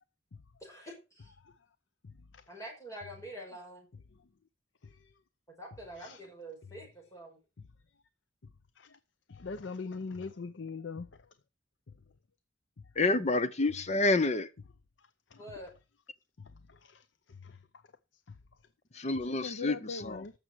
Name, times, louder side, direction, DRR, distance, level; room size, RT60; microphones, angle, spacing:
voice 1, 0.6-1.3 2.5-3.9 5.6-7.4 15.4-15.7, right 1 dB, 15° left, 5.4 m, -46 dB
voice 2, 9.3-11.1 15.3-15.4 16.8-17.0 17.4-17.5 19.4-20.3, left 4 dB, 80° left, 0.6 m, -40 dB
voice 3, 13.0-14.5 18.9-20.2, left 2 dB, 40° left, 0.8 m, -28 dB
14.0 x 6.5 x 4.6 m
head